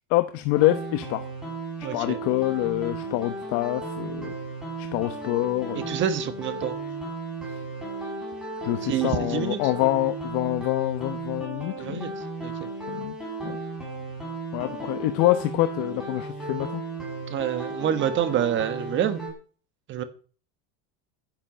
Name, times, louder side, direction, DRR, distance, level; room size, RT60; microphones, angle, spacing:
voice 1, 0.1-1.3 1.9-4.3 4.8-6.0 8.6-12.2 12.9-13.1 13.4-13.6 14.5-16.8, left 17 dB, 55° left, 1.0 m, -26 dB
sound 1, 0.5-19.3, right 2 dB, ahead, 5.5 m, -35 dB
voice 2, 1.8-2.2 5.7-6.7 8.8-9.6 11.8-12.1 12.4-12.5 17.3-19.2 19.9-20.0, right 9 dB, 35° right, 1.4 m, -27 dB
10.5 x 8.0 x 7.7 m
cardioid pair, 165°, 35 cm